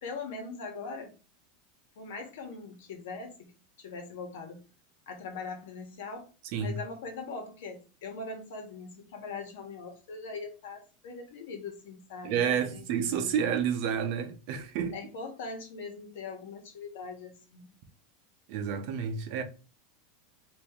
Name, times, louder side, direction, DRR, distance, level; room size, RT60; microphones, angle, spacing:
voice 1, 0.0-1.1 2.0-3.5 3.8-4.6 5.1-6.3 6.6-13.4 14.9-17.7, left 4 dB, 70° left, 1.1 m, -41 dB
voice 2, 12.2-14.9 18.5-19.4, right 7 dB, 50° right, 0.6 m, -30 dB
2.9 x 2.6 x 3.5 m
supercardioid pair, 165°, 0 cm